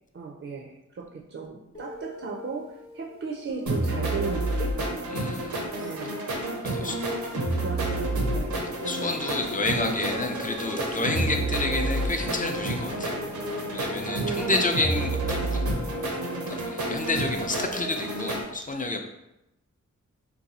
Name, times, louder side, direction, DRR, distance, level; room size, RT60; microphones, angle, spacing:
voice 1, 0.1-4.8 5.8-6.2 6.6-7.0 7.6-8.5 14.2-14.7, right 5 dB, 45° right, -1 dB, 0.5 m, -36 dB
Guitar, 1.7-8.4, left 3 dB, 50° left, 0.9 m, -45 dB
sound 1, 3.7-18.4, right 1 dB, 85° right, 0.7 m, -29 dB
voice 2, 5.1-5.5 6.6-7.0 8.8-13.2 13.7-15.6 16.5-19.0, left 2 dB, 30° left, 4 dB, 0.4 m, -29 dB
sound 2, 7.9-16.6, left 2 dB, 75° left, 1.0 m, -40 dB
2.7 x 2.2 x 4.0 m, 0.89 s
cardioid pair, 50°, 29 cm